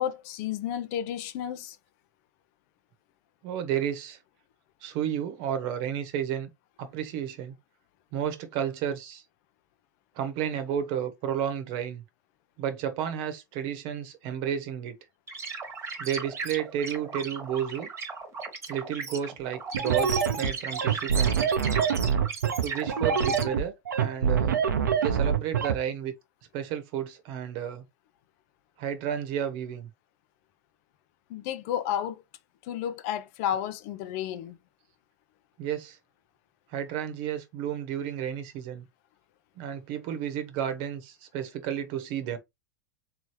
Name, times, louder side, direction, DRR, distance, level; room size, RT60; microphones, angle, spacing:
voice 1, 0.0-1.8 31.3-32.2 32.6-34.6, left 10 dB, 55° left, 0.6 m, -32 dB
voice 2, 3.4-4.2 4.8-6.5 6.8-7.5 8.1-9.2 10.1-12.0 12.6-14.9 16.0-17.9 18.7-21.5 22.6-24.5 25.0-26.1 26.5-27.8 28.8-29.9 35.6-36.0 36.7-38.8 39.6-42.4, right 9 dB, 50° right, 1.0 m, -32 dB
sound 1, 15.3-23.4, right 4 dB, 25° right, 1.2 m, -36 dB
sound 2, 19.7-25.8, right 7 dB, 85° right, 0.7 m, -25 dB
3.8 x 3.0 x 3.2 m
hypercardioid pair, 95°, 10 cm